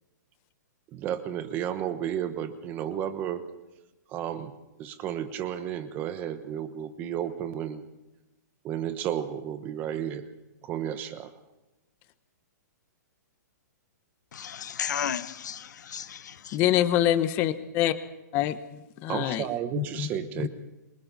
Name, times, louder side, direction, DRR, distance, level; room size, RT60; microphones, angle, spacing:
voice 1, 0.9-3.4 4.1-7.8 8.6-10.3 10.6-11.3 19.1-20.5, right 10 dB, 20° right, 1.1 m, -32 dB
voice 2, 14.3-16.6, left 8 dB, 70° left, 1.1 m, -34 dB
voice 3, 16.5-17.9 18.3-18.6 19.0-19.4 19.7-20.1 20.4-20.5, left 12 dB, 20° left, 1.0 m, -25 dB
26.5 x 23.5 x 4.1 m
hypercardioid pair, 170°, 10 cm